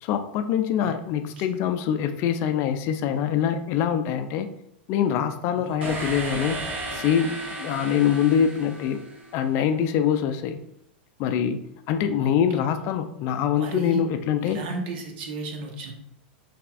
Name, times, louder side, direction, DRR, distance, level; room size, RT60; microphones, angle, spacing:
voice 1, 0.0-4.5 4.9-6.6 6.9-9.0 9.3-10.6 11.2-11.6 11.9-14.6, left 8 dB, 45° left, 9 dB, 0.4 m, -24 dB
voice 2, 5.5-6.1 12.2-12.4 13.5-14.0 14.4-15.9, right 3 dB, 60° right, 3 dB, 1.0 m, -34 dB
sound 1, 5.8-9.6, right 2 dB, 85° right, 1.4 m, -34 dB
5.5 x 3.4 x 2.4 m, 0.77 s
hypercardioid pair, 105°, 6 cm